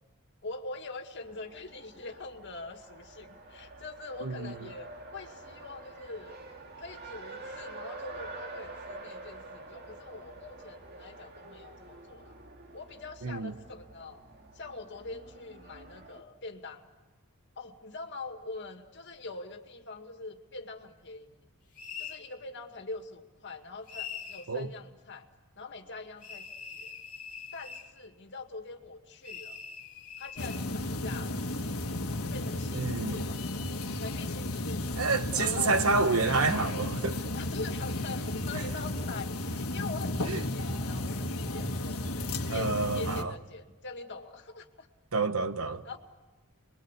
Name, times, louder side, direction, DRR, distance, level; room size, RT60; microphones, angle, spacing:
voice 1, 0.4-6.4 6.8-12.3 12.7-14.2 14.5-16.9 17.6-21.4 22.0-25.3 25.6-26.9 27.5-29.6 30.2-31.5 32.2-33.5 34.0-35.0 35.4-35.9 37.3-42.1 42.5-44.9 45.8-46.0, left 3 dB, 55° left, 2.2 m, -43 dB
Race car auto racing, 1.2-16.2, right 2 dB, 50° right, 2.3 m, -47 dB
voice 2, 4.2-4.5 13.2-13.5 24.5-24.7 32.7-33.2 35.0-37.2 40.2-40.4 42.5-43.3 45.1-45.8, right 3 dB, 80° right, 1.2 m, -28 dB
sound 1, 21.8-22.2 23.9-24.5 26.2-27.9 29.2-30.6, left 6 dB, 40° left, 2.6 m, -42 dB
sound 2, 30.4-43.2, left 2 dB, 80° left, 1.6 m, -33 dB
29.0 x 22.0 x 8.4 m
head